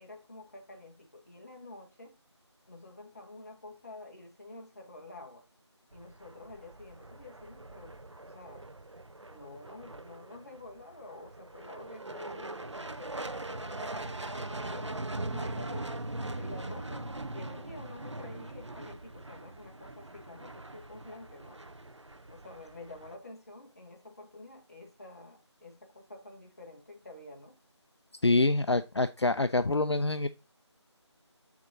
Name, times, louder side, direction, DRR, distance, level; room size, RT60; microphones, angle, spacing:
voice 1, 0.0-2.2 2.7-5.4 5.9-8.7 9.3-15.0 15.3-16.1 16.3-17.1 17.3-21.6 22.3-27.6 28.4-28.9, left 2 dB, 35° left, 1.5 m, -49 dB
sound 1, 5.9-23.2, right 2 dB, 75° right, 0.9 m, -41 dB
voice 2, 28.2-30.3, left 2 dB, 65° left, 0.5 m, -26 dB
7.8 x 5.9 x 2.8 m
figure-of-eight pair, 170°, 15 cm